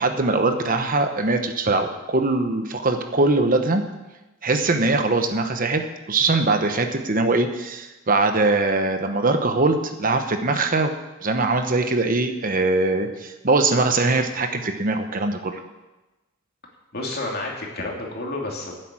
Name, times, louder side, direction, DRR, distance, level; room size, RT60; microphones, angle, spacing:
voice 1, 0.0-3.8 4.4-5.8 6.1-15.6, right 3 dB, 40° right, 7 dB, 1.0 m, -22 dB
voice 2, 16.9-18.8, left 2 dB, 50° left, -1 dB, 2.8 m, -30 dB
11.0 x 7.8 x 8.9 m, 1.1 s
head